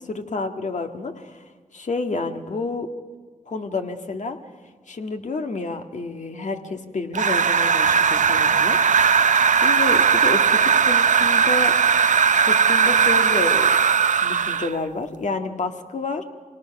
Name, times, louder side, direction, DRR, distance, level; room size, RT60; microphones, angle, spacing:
voice 1, 0.0-1.4 1.7-2.9 3.5-4.4 4.9-8.8 9.5-11.7 12.4-13.7 14.2-16.2, left 3 dB, 55° left, 5 dB, 1.9 m, -29 dB
sound 1, 7.1-14.8, right 6 dB, 60° right, 0.7 m, -18 dB
26.0 x 18.5 x 6.0 m, 1.5 s
cardioid pair, 45°, 15 cm